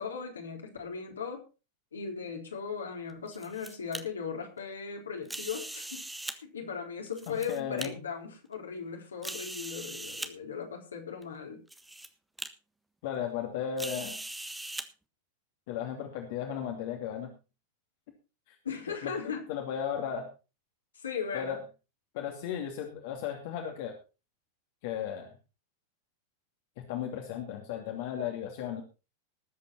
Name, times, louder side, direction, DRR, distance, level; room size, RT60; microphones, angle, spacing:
voice 1, 0.0-1.4 1.9-11.6 18.6-19.4 20.9-21.6, left 6 dB, 70° left, 1 dB, 3.9 m, -38 dB
sound 1, 3.1-4.0 5.3-6.4 7.1-7.9 8.5-8.6 9.2-10.3 11.2-11.3 11.7-12.1 12.4-12.5 13.8-14.9, right 1 dB, 5° right, 1.4 m, -40 dB
voice 2, 7.3-8.0 13.0-14.1 15.7-17.3 18.5-18.6 18.9-19.1 19.5-20.3 21.3-21.6 22.1-23.9 24.8-25.3 26.9-28.8, left 8 dB, 50° left, 2 dB, 2.6 m, -35 dB
19.5 x 8.4 x 4.3 m, 0.32 s
figure-of-eight pair, 90°, 0 cm